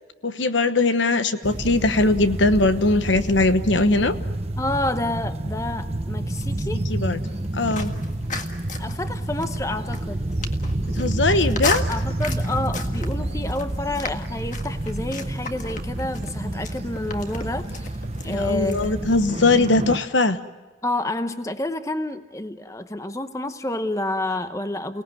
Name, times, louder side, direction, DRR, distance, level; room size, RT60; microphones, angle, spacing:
voice 1, 0.2-4.2 6.9-7.2 7.5-7.9 11.0-11.8 18.2-20.4, left 2 dB, 80° left, 11 dB, 1.1 m, -20 dB
sound 1, 1.4-20.0, right 1 dB, 35° right, 0.9 m, -29 dB
voice 2, 4.6-6.8 8.8-10.3 11.9-17.9 18.2-19.1 20.8-25.0, left 2 dB, 15° left, 9 dB, 0.8 m, -29 dB
sound 2, 7.2-18.9, left 4 dB, 40° left, 1.8 m, -36 dB
29.5 x 18.5 x 9.3 m, 1.2 s
head